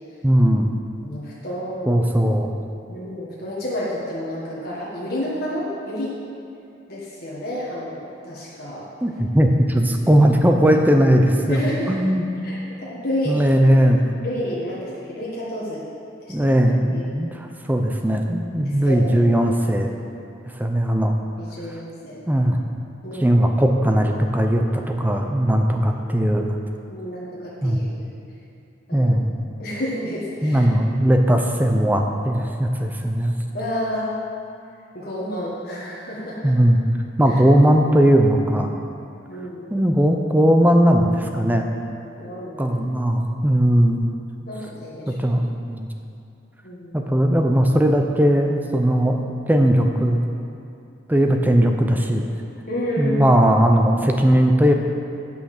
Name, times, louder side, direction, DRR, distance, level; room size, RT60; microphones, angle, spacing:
voice 1, 0.2-0.7 1.9-2.5 9.0-11.6 11.9-12.2 13.3-14.0 16.3-19.9 20.6-21.2 22.3-22.6 23.2-26.5 27.6-27.8 28.9-29.3 30.4-33.3 36.4-36.8 37.2-38.7 39.7-41.7 42.6-44.1 45.1-45.4 45.7-45.9 46.9-50.2 51.1-52.3 53.0-54.7, equal, 10° right, 3 dB, 0.5 m, -18 dB
voice 2, 1.0-2.0 2.3-2.4 2.9-6.2 6.9-8.8 11.5-12.0 12.4-13.4 14.2-15.8 16.9-17.0 18.8-19.2 21.4-22.2 23.0-23.4 26.9-28.1 28.9-29.1 29.6-30.6 33.5-34.1 34.9-36.5 37.3-37.4 39.3-39.7 42.2-42.8 44.5-45.3 46.6-47.2 52.7-53.3, equal, 50° left, -7 dB, 1.5 m, -30 dB
9.0 x 5.7 x 6.5 m, 2.6 s
head